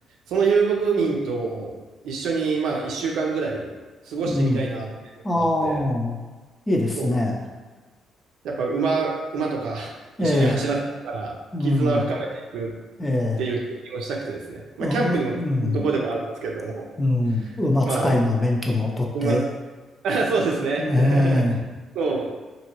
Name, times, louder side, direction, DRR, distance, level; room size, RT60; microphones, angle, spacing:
voice 1, 0.3-1.7 2.0-3.7 4.1-4.9 5.3-5.8 7.0-7.1 8.4-9.9 10.2-10.8 11.0-11.3 11.6-12.7 13.4-15.3 15.6-16.9 17.9-18.1 19.1-19.4 20.0-21.4 21.9-22.3, right 4 dB, 80° right, -1 dB, 0.6 m, -26 dB
voice 2, 4.3-4.6 5.2-6.2 6.7-7.4 10.2-10.5 11.5-12.0 13.0-13.4 14.8-15.9 17.0-19.4 20.8-21.6, left 1 dB, 20° left, 0 dB, 0.5 m, -22 dB
2.9 x 2.7 x 2.9 m, 1.3 s
cardioid pair, 90°, 0 cm